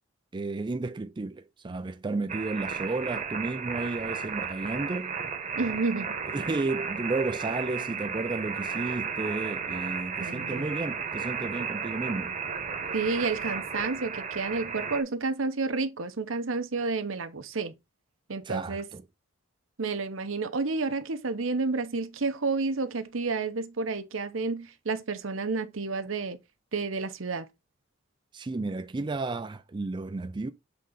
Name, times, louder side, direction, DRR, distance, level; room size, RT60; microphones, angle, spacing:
voice 1, 0.3-5.1 6.3-12.3 18.4-19.0 28.3-30.5, right 3 dB, 25° right, 0.4 m, -32 dB
sound 1, 2.3-15.0, right 6 dB, 40° right, 1.1 m, -34 dB
voice 2, 5.5-6.2 10.2-10.7 12.9-17.7 18.3-18.9 19.8-26.4 26.7-27.5, right 3 dB, 80° right, 0.9 m, -30 dB
7.4 x 3.9 x 3.8 m
head